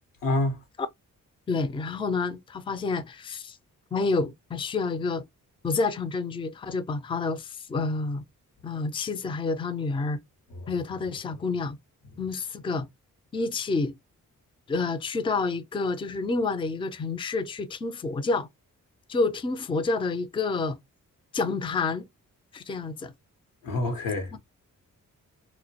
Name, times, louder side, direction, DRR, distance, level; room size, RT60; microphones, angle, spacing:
voice 1, 0.2-0.6 10.6-10.7 23.6-24.4, left 2 dB, 85° left, 0.8 m, -27 dB
voice 2, 1.5-3.6 3.9-5.2 5.6-8.2 8.6-10.2 10.7-11.8 12.2-12.9 13.3-13.9 14.7-18.5 19.1-20.8 21.3-22.1 22.5-23.1, left 3 dB, 15° left, 0.4 m, -28 dB
2.2 x 2.1 x 2.7 m
cardioid pair, 65°, 33 cm